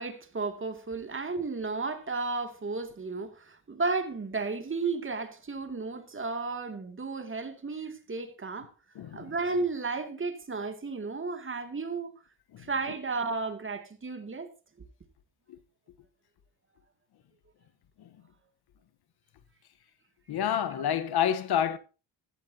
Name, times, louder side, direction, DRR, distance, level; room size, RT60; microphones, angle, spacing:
voice 1, 0.0-8.7 9.1-12.1 12.6-14.5, right 3 dB, 30° right, 2.5 m, -33 dB
voice 2, 8.9-9.3 12.5-12.6 15.5-15.6 20.3-21.8, left 9 dB, 65° left, 1.3 m, -28 dB
14.0 x 14.0 x 2.9 m
cardioid pair, 80°, 41 cm